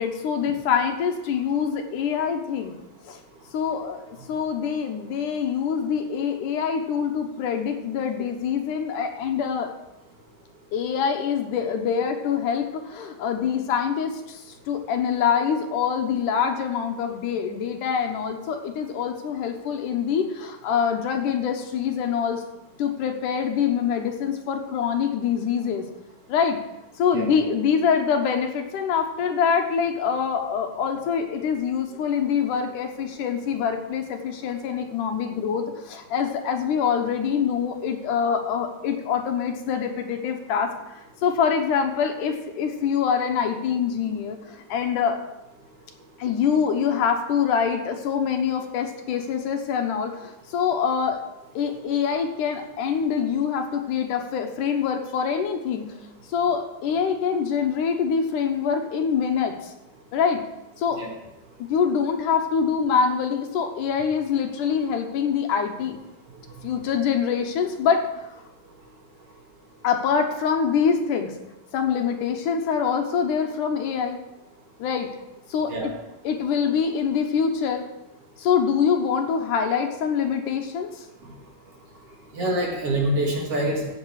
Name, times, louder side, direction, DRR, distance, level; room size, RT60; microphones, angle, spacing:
voice 1, 0.0-2.8 3.0-3.2 3.5-9.7 10.7-22.4 22.8-25.9 26.3-26.6 27.0-45.2 46.2-51.2 51.6-55.9 56.3-59.7 60.1-60.4 60.8-61.0 61.6-66.0 66.6-68.3 69.8-71.4 71.7-74.2 74.8-75.1 75.5-75.9 76.2-77.9 78.4-81.1, left 7 dB, 75° left, 4 dB, 2.5 m, -25 dB
voice 2, 82.3-83.9, right 1 dB, 50° right, -1 dB, 2.5 m, -25 dB
15.0 x 7.8 x 4.8 m, 0.94 s
omnidirectional pair, 3.8 m